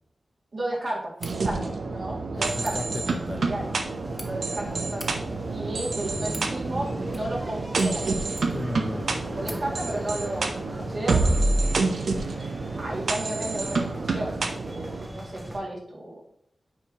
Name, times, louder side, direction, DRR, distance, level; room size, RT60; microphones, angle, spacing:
voice 1, 0.5-2.8 3.3-3.7 4.1-8.4 9.3-11.4 12.8-16.2, right 1 dB, 60° right, -3 dB, 2.3 m, -34 dB
sound 1, 1.1-1.4 2.5-2.8 3.7-4.3 4.8-5.1 5.9-6.5 7.1-7.5 7.7-8.7 9.0-9.1 9.4-9.6, equal, 5° left, 1.1 m, -43 dB
sound 2, 1.2-15.1, right 3 dB, 90° right, 0.8 m, -28 dB
voice 2, 2.3-3.5 8.5-9.7, left 2 dB, 30° left, 7 dB, 0.5 m, -36 dB
sound 3, 2.4-15.6, right 1 dB, 25° right, 1.0 m, -38 dB
8.7 x 4.8 x 2.9 m, 0.73 s
wide cardioid pair, 90°, 0 cm